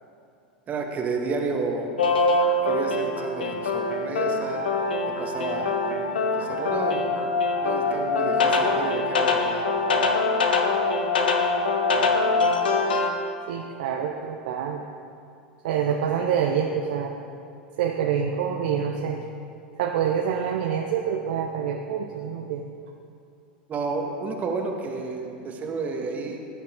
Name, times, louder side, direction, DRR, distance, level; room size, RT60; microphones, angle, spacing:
voice 1, 0.7-1.9 2.6-4.6 5.1-5.7 6.4-7.1 7.6-9.7 23.7-26.4, right 4 dB, 30° right, 2 dB, 1.6 m, -31 dB
sound 1, 2.0-13.1, left 3 dB, 75° left, 1.2 m, -23 dB
voice 2, 13.5-14.9 15.6-17.2 17.8-19.2 19.8-22.7 25.4-25.5, right 8 dB, 60° right, 2 dB, 0.9 m, -26 dB
19.0 x 9.3 x 3.8 m, 2.5 s
figure-of-eight pair, 85°, 5 cm